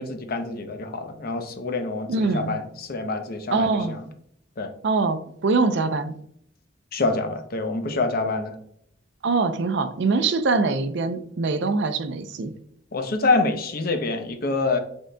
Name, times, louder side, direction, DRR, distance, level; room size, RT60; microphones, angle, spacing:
voice 1, 0.0-4.0 4.6-4.7 6.9-8.5 12.9-14.8, left 3 dB, 55° left, 0.7 m, -26 dB
voice 2, 2.1-2.6 3.5-4.0 4.8-6.2 9.2-12.5, right 3 dB, 65° right, 0.5 m, -23 dB
6.3 x 3.7 x 2.2 m
head